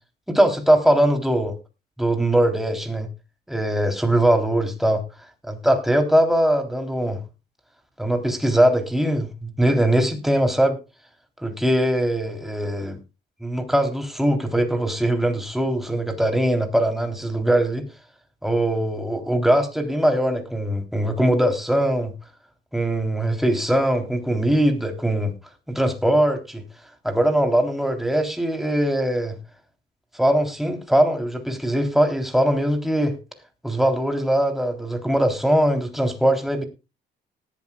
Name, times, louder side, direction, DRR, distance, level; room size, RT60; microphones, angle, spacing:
voice 1, 0.3-1.6 2.0-3.1 3.5-5.0 5.5-7.2 8.0-10.8 11.4-13.0 13.4-17.8 18.4-22.1 22.7-25.3 25.7-26.6 27.0-29.4 30.1-33.2 33.6-36.6, right 1 dB, ahead, 5 dB, 3.6 m, -21 dB
19.0 x 11.5 x 2.4 m, 0.29 s
cardioid pair, 90°, 20 cm